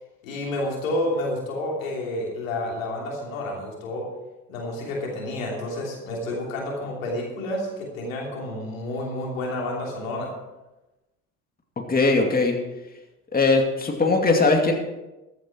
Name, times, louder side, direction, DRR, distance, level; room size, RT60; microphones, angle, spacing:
voice 1, 0.2-4.1 4.5-10.3, left 1 dB, 85° left, -1 dB, 3.1 m, -30 dB
voice 2, 11.9-12.6 13.3-14.7, left 3 dB, 20° left, 2 dB, 2.5 m, -20 dB
14.5 x 9.4 x 4.6 m, 1.0 s
hypercardioid pair, 60°, 39 cm